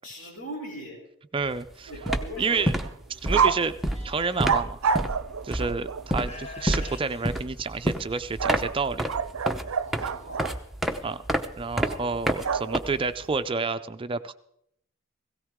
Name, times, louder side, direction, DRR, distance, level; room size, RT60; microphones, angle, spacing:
voice 1, 0.0-1.0 1.9-2.6 3.2-3.6 9.8-10.7 11.8-12.8, equal, 70° left, -3 dB, 6.8 m, -41 dB
voice 2, 1.3-1.9 2.4-2.7 3.1-3.7 4.0-4.8 5.4-9.1 11.0-11.2 11.6-14.3, right 4 dB, 25° right, 11 dB, 0.4 m, -29 dB
sound 1, 1.5-1.7 1.9-13.4, equal, ahead, 0.8 m, -29 dB
sound 2, 1.9-2.5 2.8-2.9 3.3-3.6 4.4-6.1 8.4-10.6 12.4-13.1, right 6 dB, 85° right, 0.5 m, -28 dB
Livestock farm animals working animals, 3.8-4.5 5.4-5.5 6.2-8.2, left 2 dB, 35° left, 1.8 m, -44 dB
17.5 x 16.5 x 3.6 m, 0.73 s
head